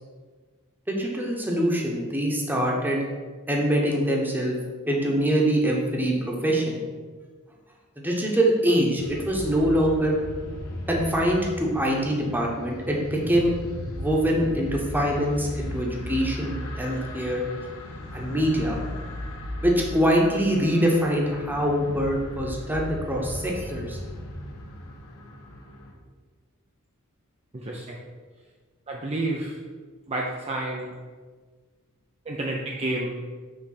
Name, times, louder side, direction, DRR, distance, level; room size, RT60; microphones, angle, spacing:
voice 1, 0.9-3.0 3.5-4.5 4.9-6.1 6.4-6.8 8.0-10.2 10.9-13.5 13.9-17.4 18.1-18.8 19.6-24.0, equal, 10° right, -1 dB, 1.1 m, -24 dB
sound 1, 9.0-25.9, left 1 dB, 70° left, 1.1 m, -37 dB
voice 2, 27.5-28.0 28.9-29.6 30.1-30.9 32.3-33.2, right 2 dB, 30° right, -2 dB, 0.6 m, -30 dB
6.1 x 3.4 x 5.8 m, 1.5 s
head